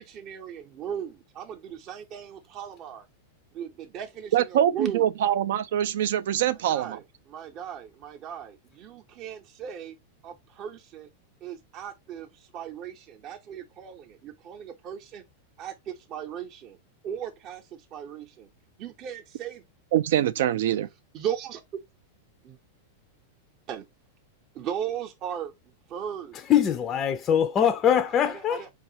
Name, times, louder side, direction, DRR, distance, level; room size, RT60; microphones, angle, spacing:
voice 1, 0.0-3.1 3.5-5.1 6.5-10.0 10.2-11.1 11.4-15.2 15.6-16.8 17.0-18.5 18.8-19.6 21.1-21.6 22.4-22.6 23.7-23.9 24.5-26.4 28.2-28.7, right 9 dB, 40° right, 0.6 m, -37 dB
voice 2, 4.3-7.0 19.9-20.9, right 11 dB, 70° right, 0.4 m, -24 dB
voice 3, 26.5-28.7, left 9 dB, 25° left, 0.4 m, -22 dB
4.6 x 2.3 x 2.8 m
supercardioid pair, 130°, 0 cm